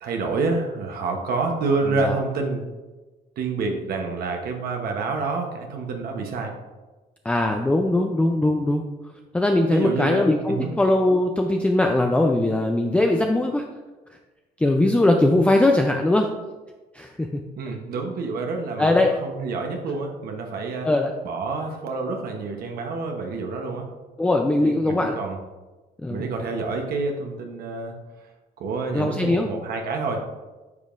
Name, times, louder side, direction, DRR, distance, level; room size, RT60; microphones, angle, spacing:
voice 1, 0.0-2.6 3.4-6.5 9.7-10.7 17.6-20.9 21.2-23.9 24.6-25.4 26.1-28.3 28.6-30.2, right 3 dB, 65° right, 3 dB, 1.0 m, -28 dB
voice 2, 7.2-8.8 9.3-13.6 14.6-16.3 16.9-17.4 18.8-19.1 20.8-21.1 24.2-25.2 26.0-26.2 28.9-29.5, left 2 dB, 5° left, 3 dB, 0.4 m, -20 dB
9.5 x 5.2 x 2.5 m, 1.2 s
cardioid pair, 110°, 17 cm